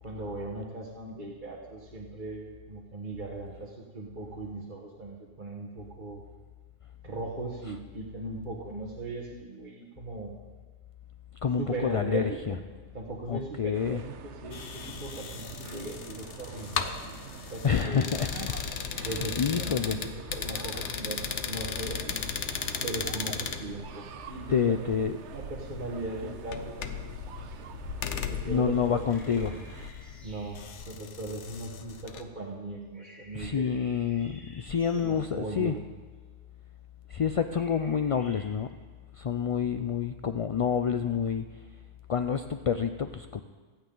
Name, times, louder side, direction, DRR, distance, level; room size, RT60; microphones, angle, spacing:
voice 1, 0.0-6.2 7.0-10.3 11.6-12.6 12.9-14.1 14.4-14.6 15.0-17.2 17.5-18.1 19.0-22.1 22.8-24.9 25.3-27.1 27.4-27.5 28.3-29.1 29.4-29.6 30.2-33.7 34.9-35.8, right 2 dB, 45° right, -3 dB, 1.5 m, -38 dB
voice 2, 11.4-12.5 13.3-14.0 17.6-18.5 18.9-20.0 24.5-25.1 28.5-29.5 33.3-35.7 37.1-38.7 39.2-41.4 42.1-43.4, left 7 dB, 60° left, 8 dB, 0.3 m, -28 dB
sound 1, 13.7-29.9, right 8 dB, 90° right, 1.0 m, -45 dB
sound 2, 14.5-32.2, left 7 dB, 90° left, 1.1 m, -37 dB
sound 3, 29.1-30.8 32.9-35.3 37.5-38.5, equal, ahead, 4.0 m, -54 dB
24.5 x 8.8 x 3.9 m, 1.4 s
omnidirectional pair, 1.1 m